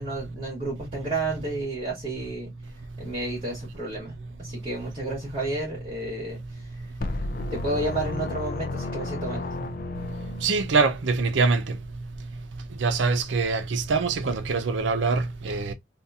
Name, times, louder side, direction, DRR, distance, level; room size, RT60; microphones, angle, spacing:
voice 1, 0.0-2.5 3.0-4.1 4.4-6.4 7.5-9.5, right 2 dB, 30° right, 1.8 m, -31 dB
sound 1, 7.0-11.0, left 2 dB, 50° left, 0.4 m, -33 dB
voice 2, 10.4-11.6 12.8-15.7, right 4 dB, 85° right, 0.6 m, -24 dB
3.5 x 2.4 x 2.7 m
head